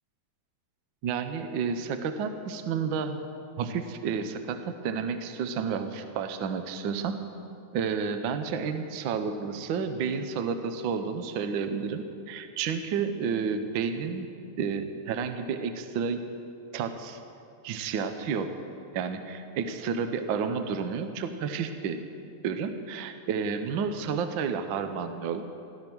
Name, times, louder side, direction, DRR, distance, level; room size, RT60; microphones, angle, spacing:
voice 1, 1.0-3.2 3.6-7.2 7.7-14.3 14.6-16.3 16.7-17.2 17.6-18.5 18.9-22.0 22.4-25.4, right 6 dB, 75° right, 8 dB, 1.1 m, -31 dB
16.0 x 13.0 x 6.1 m, 2.6 s
omnidirectional pair, 3.3 m